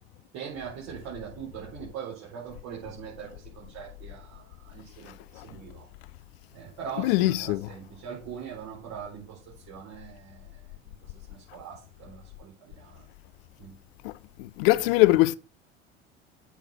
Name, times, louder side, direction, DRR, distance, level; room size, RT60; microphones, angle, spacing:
voice 1, 0.3-5.9 6.5-13.0 13.6-13.7 14.8-14.9, right 7 dB, 55° right, 4.4 m, -42 dB
voice 2, 7.0-7.7 14.0-14.1 14.4-15.4, left 18 dB, 60° left, 0.5 m, -22 dB
8.0 x 4.6 x 6.1 m
hypercardioid pair, 75°, 33 cm